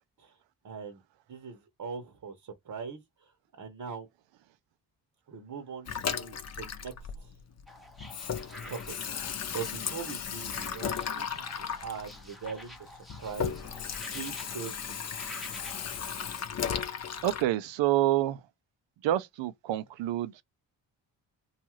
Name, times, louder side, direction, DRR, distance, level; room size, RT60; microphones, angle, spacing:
voice 1, 0.6-1.0 1.3-3.3 3.6-4.1 5.3-7.4 8.6-13.6 14.1-15.0, right 6 dB, 45° right, 0.9 m, -41 dB
Water tap faucet / Sink (filling or washing), 5.9-7.7 7.9-17.4, left 7 dB, 35° left, 0.5 m, -36 dB
sound 1, 7.7-16.4, equal, ahead, 0.7 m, -49 dB
voice 2, 17.2-18.4 19.0-20.4, right 14 dB, 70° right, 0.5 m, -27 dB
2.6 x 2.4 x 3.0 m
supercardioid pair, 55°, 46 cm